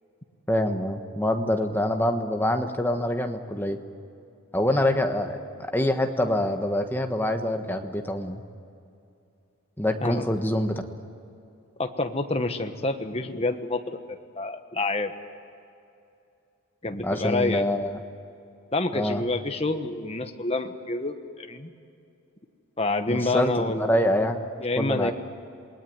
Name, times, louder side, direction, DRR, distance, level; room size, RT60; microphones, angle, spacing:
voice 1, 0.5-3.8 4.5-8.4 9.8-10.8 17.0-18.0 18.9-19.2 23.1-24.4 24.8-25.1, left 1 dB, 10° left, 5 dB, 1.4 m, -25 dB
voice 2, 11.8-15.1 16.8-17.6 18.7-21.7 22.8-23.9 24.6-25.1, left 2 dB, 30° left, 6 dB, 1.2 m, -28 dB
27.5 x 20.0 x 9.4 m, 2.6 s
head